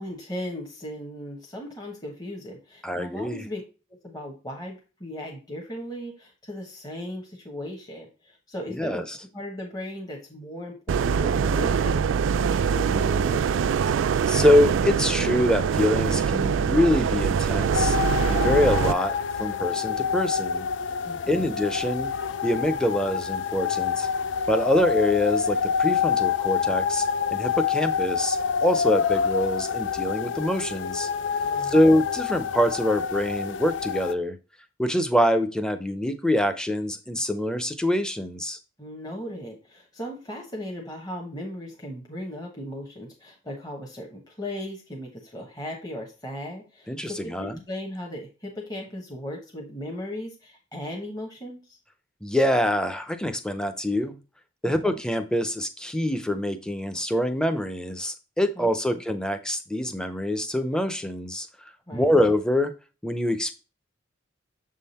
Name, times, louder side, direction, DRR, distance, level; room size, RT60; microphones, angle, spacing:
voice 1, 0.0-3.6 4.0-9.0 9.3-12.0 12.4-13.9 21.0-21.5 31.4-31.8 38.8-51.8 54.6-55.0 58.6-59.0 61.9-62.1, left 1 dB, 20° left, -1 dB, 1.1 m, -37 dB
voice 2, 2.8-3.4 8.7-9.2 14.3-18.0 18.3-20.7 21.3-22.1 22.4-24.1 24.5-31.1 31.6-34.4 34.8-38.6 46.9-47.6 52.2-54.2 54.6-61.5 61.9-62.7 63.0-63.5, left 1 dB, 5° left, 9 dB, 0.5 m, -25 dB
sound 1, 10.9-18.9, right 6 dB, 85° right, 0.3 m, -23 dB
sound 2, 17.7-34.1, left 7 dB, 70° left, 0.4 m, -27 dB
7.0 x 3.7 x 4.1 m, 0.33 s
head